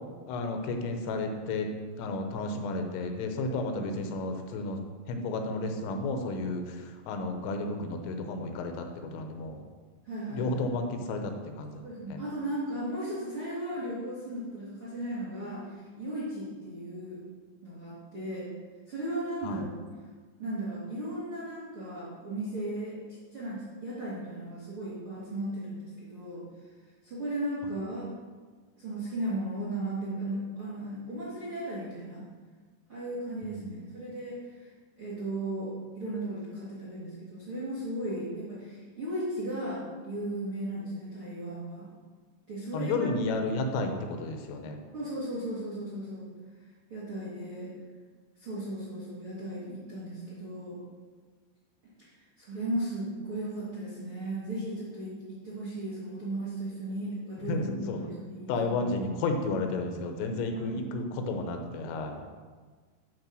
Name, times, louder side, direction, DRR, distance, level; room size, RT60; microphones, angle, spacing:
voice 1, 0.3-1.7 2.0-4.8 5.1-9.6 10.3-11.8 12.1-12.2 19.4-19.6 33.4-33.7 42.7-44.8 57.5-58.0 58.5-62.2, left 2 dB, 80° left, 5 dB, 3.3 m, -32 dB
voice 2, 10.0-10.7 11.8-15.7 16.0-17.2 17.6-18.5 18.9-19.8 20.4-22.9 23.3-26.4 27.0-28.1 28.8-32.2 32.9-34.4 35.0-41.9 42.5-43.1 44.9-46.2 46.9-47.7 48.4-50.8 52.0-52.1 52.4-58.9 60.5-60.8, right 1 dB, 60° right, -9 dB, 1.4 m, -36 dB
10.5 x 4.6 x 6.2 m, 1.5 s
omnidirectional pair, 5.9 m